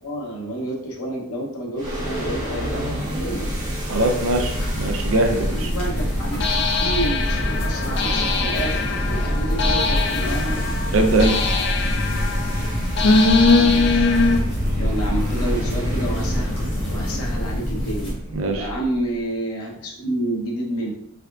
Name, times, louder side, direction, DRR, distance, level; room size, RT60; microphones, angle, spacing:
voice 1, 0.0-3.5 5.3-8.9 9.1-10.6 13.3-14.1 14.7-16.5 16.9-18.1 18.5-20.9, right 1 dB, 80° left, -1 dB, 0.9 m, -29 dB
sound 1, 1.8-19.1, equal, 35° right, 1.2 m, -28 dB
voice 2, 3.9-5.7 10.9-11.3 18.3-18.7, right 2 dB, 65° right, 4 dB, 0.6 m, -21 dB
sound 2, 4.5-18.1, equal, 25° left, 1.0 m, -27 dB
sound 3, 4.8-4.9 6.4-14.4, left 3 dB, 50° left, 0.3 m, -21 dB
3.4 x 3.4 x 2.4 m, 0.72 s
head